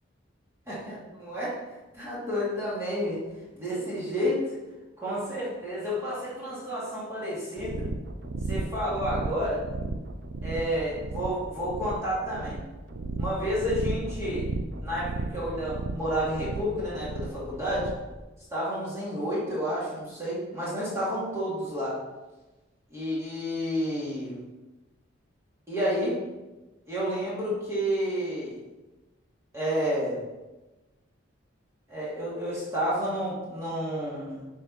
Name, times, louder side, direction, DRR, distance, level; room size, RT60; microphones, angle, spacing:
voice 1, 0.7-1.6 1.9-3.2 3.5-4.5 5.0-7.9 8.5-9.7 10.4-12.6 13.2-14.5 14.8-17.9 18.5-22.0 22.9-24.4 25.7-26.2 26.9-28.6 29.5-30.2 31.9-34.5, equal, 15° right, -9 dB, 2.6 m, -30 dB
sound 1, 7.6-18.1, right 3 dB, 55° right, 0.6 m, -34 dB
9.7 x 4.7 x 4.3 m, 1.1 s
head